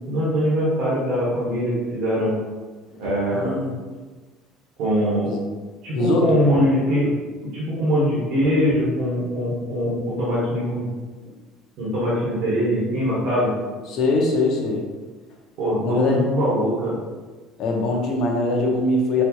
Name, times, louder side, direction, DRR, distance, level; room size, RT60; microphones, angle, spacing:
voice 1, 0.1-2.3 3.0-3.5 4.8-5.3 5.8-7.1 7.5-10.8 11.8-13.5 15.6-16.9, equal, 55° right, -8 dB, 1.2 m, -22 dB
voice 2, 3.3-3.8 5.3-5.4 5.9-6.4 13.9-14.8 15.8-16.3 17.6-19.2, left 2 dB, 45° left, 0 dB, 0.7 m, -22 dB
4.2 x 2.3 x 2.9 m, 1.3 s
cardioid pair, 165°, 0 cm